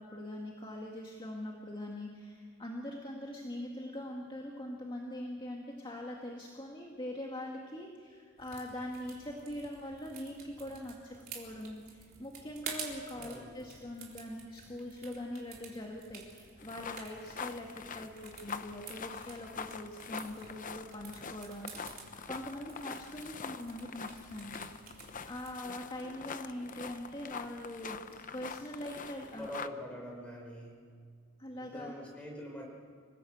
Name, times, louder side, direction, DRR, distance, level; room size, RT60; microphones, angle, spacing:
voice 1, 0.0-25.0 25.3-28.0 28.3-29.5 31.4-31.9, left 1 dB, 25° left, 0 dB, 1.9 m, -42 dB
sound 1, 8.4-25.5, right 6 dB, 45° right, 3.9 m, -50 dB
voice 2, 13.1-13.7 29.3-30.8 31.6-32.6, equal, 5° left, -1 dB, 5.1 m, -44 dB
sound 2, 16.6-29.7, left 5 dB, 40° left, 0.8 m, -45 dB
26.0 x 17.5 x 8.0 m, 2.1 s
head